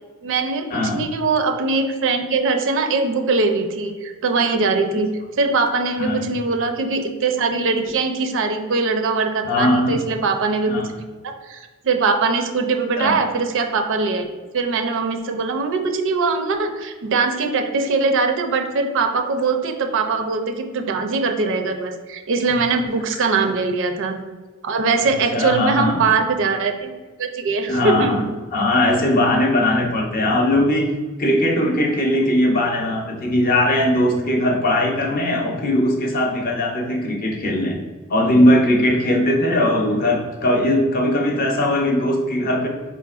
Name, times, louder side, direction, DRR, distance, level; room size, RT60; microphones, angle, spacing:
voice 1, 0.2-11.1 11.4-14.3 14.5-24.2 24.6-26.9 27.2-28.3, right 4 dB, 60° right, 5 dB, 0.5 m, -21 dB
voice 2, 9.4-10.0 10.7-10.9 13.0-13.2 23.3-23.5 25.0-26.0 27.7-28.2 28.5-30.9 31.2-37.8 38.1-42.7, left 1 dB, 40° left, 2 dB, 0.7 m, -19 dB
4.3 x 3.7 x 2.4 m, 1.3 s
head